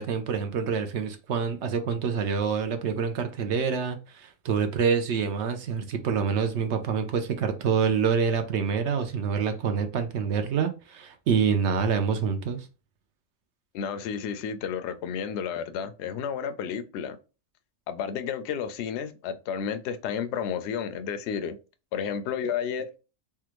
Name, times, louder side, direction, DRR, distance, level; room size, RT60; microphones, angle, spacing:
voice 1, 0.0-12.7, right 6 dB, 65° right, 0.7 m, -26 dB
voice 2, 13.7-17.2 17.9-21.6 21.9-22.9, left 7 dB, 65° left, 0.7 m, -31 dB
3.5 x 2.2 x 2.9 m
omnidirectional pair, 1.5 m